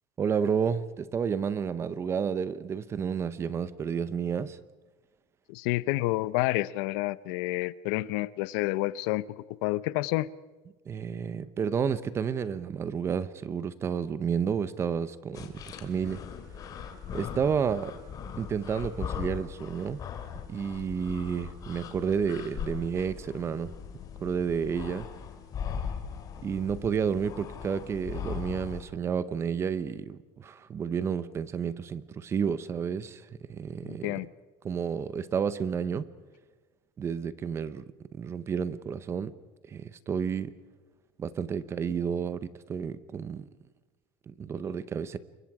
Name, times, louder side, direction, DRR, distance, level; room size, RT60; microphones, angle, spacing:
voice 1, 0.2-4.6 10.9-16.2 17.1-18.0 18.4-20.0 20.5-23.7 24.2-25.1 26.4-34.1 34.6-36.1 37.0-37.8 38.1-39.3 39.7-40.5 41.2-43.5 44.3-45.2, right 7 dB, 20° right, 16 dB, 0.8 m, -31 dB
voice 2, 5.5-10.3 33.8-34.3, left 18 dB, 65° left, 18 dB, 0.7 m, -29 dB
sound 1, 15.3-28.8, left 7 dB, 30° left, 2.4 m, -39 dB
28.5 x 23.0 x 4.9 m, 1.2 s
cardioid pair, 165°, 13 cm